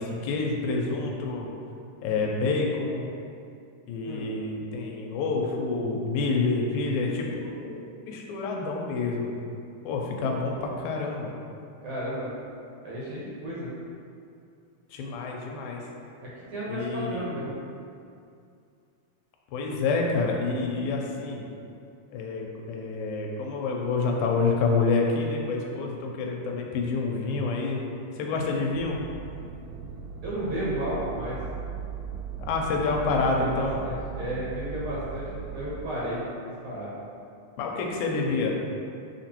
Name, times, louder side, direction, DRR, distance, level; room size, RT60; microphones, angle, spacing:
voice 1, 0.0-1.5 2.0-3.1 3.9-7.8 8.1-9.3 9.9-11.3 14.9-15.8 16.7-17.3 19.5-21.4 22.1-27.8 28.2-29.0 32.5-33.8 37.6-38.6, left 3 dB, 80° left, 0 dB, 1.9 m, -28 dB
voice 2, 11.8-12.3 12.8-13.7 16.5-17.5 30.2-31.4 33.1-36.2 36.6-36.9, right 1 dB, 65° right, -8 dB, 1.3 m, -33 dB
sound 1, 28.7-35.9, right 6 dB, 90° right, 2.1 m, -38 dB
5.8 x 2.9 x 2.9 m, 2.5 s
omnidirectional pair, 3.5 m